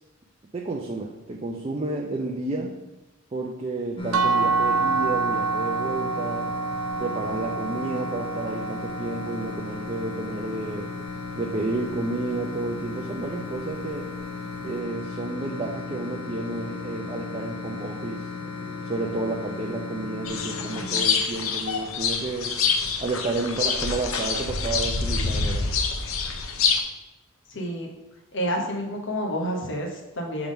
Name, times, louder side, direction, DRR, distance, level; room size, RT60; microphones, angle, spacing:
voice 1, 0.5-2.8 3.3-6.5 7.0-10.9 11.4-14.1 14.6-18.2 18.8-22.6 23.0-25.7, right 2 dB, 30° right, 0 dB, 0.5 m, -31 dB
sound 1, 4.0-20.8, left 4 dB, 25° left, 1.1 m, -35 dB
sound 2, 4.1-9.9, right 4 dB, 75° right, 0.5 m, -27 dB
sound 3, 20.3-26.8, left 5 dB, 90° left, 0.7 m, -26 dB
voice 2, 27.5-27.9 28.3-30.5, equal, 65° left, 0 dB, 1.2 m, -29 dB
5.9 x 3.6 x 5.1 m, 0.98 s
head